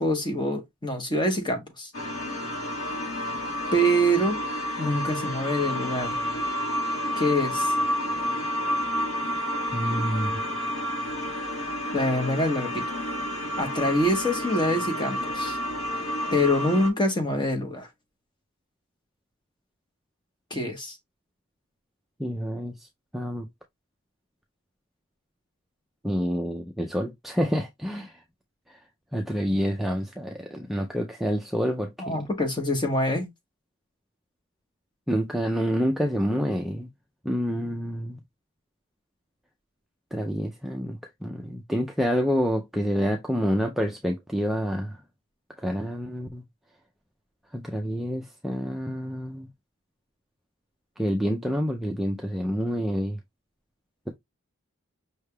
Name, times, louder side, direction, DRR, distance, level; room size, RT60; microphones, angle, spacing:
voice 1, 0.0-1.9 3.7-4.4 4.8-6.2 7.2-7.7 11.9-12.8 13.6-15.6 16.3-17.9 20.5-21.0 32.0-33.3, equal, 20° left, 0.9 m, -25 dB
sound 1, 1.9-16.9, equal, 75° left, 1.4 m, -30 dB
voice 2, 9.7-10.4 22.2-22.9 23.1-23.5 26.0-28.2 29.1-31.9 35.1-36.9 37.2-38.2 40.1-45.0 45.6-46.4 47.5-49.5 51.0-53.2, equal, ahead, 0.3 m, -28 dB
5.5 x 3.3 x 2.2 m
head